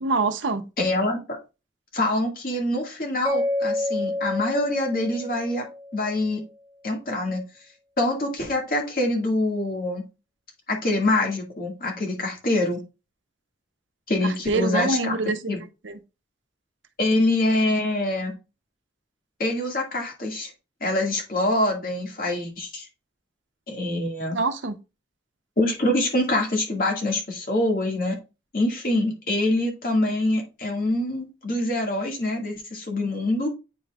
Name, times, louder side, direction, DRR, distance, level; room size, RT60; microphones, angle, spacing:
voice 1, 0.0-0.6 14.2-15.4 15.8-16.0 24.3-24.8, right 3 dB, 90° right, 0.8 m, -25 dB
voice 2, 0.8-1.4 1.9-5.7 5.9-6.4 6.8-7.4 8.0-10.1 10.7-12.8 14.1-15.6 17.0-18.4 19.4-20.5 20.8-22.9 23.7-24.4 25.6-28.2 28.5-33.5, left 1 dB, 50° left, 2.0 m, -25 dB
Mallet percussion, 3.2-6.2, left 1 dB, 15° right, 0.5 m, -29 dB
8.3 x 5.2 x 2.4 m
head